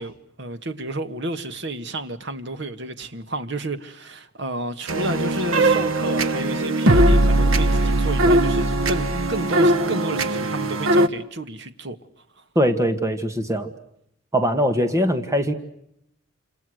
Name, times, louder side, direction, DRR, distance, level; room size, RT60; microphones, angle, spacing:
voice 1, 0.0-12.0, right 2 dB, 55° right, 1.6 m, -31 dB
sound 1, 4.9-11.1, right 1 dB, 75° right, 1.2 m, -19 dB
voice 2, 12.6-13.7 14.3-15.5, equal, 15° right, 1.8 m, -21 dB
28.5 x 27.5 x 6.5 m
head